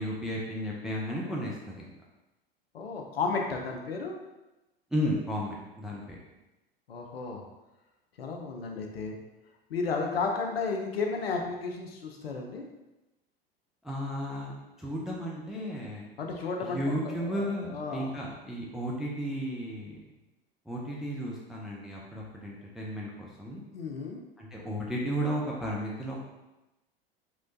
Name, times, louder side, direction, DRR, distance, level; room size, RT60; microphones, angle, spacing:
voice 1, 0.0-1.9 4.9-6.2 13.8-14.5 14.8-16.1 16.6-20.0 20.7-23.6 24.4-26.2, equal, ahead, -3 dB, 0.3 m, -34 dB
voice 2, 2.7-4.1 6.9-7.4 8.2-9.2 9.7-12.6 16.2-16.8 17.1-18.1 23.7-24.2, left 4 dB, 75° left, 2 dB, 0.6 m, -33 dB
3.1 x 3.0 x 2.5 m, 1.0 s
figure-of-eight pair, 85°, 30 cm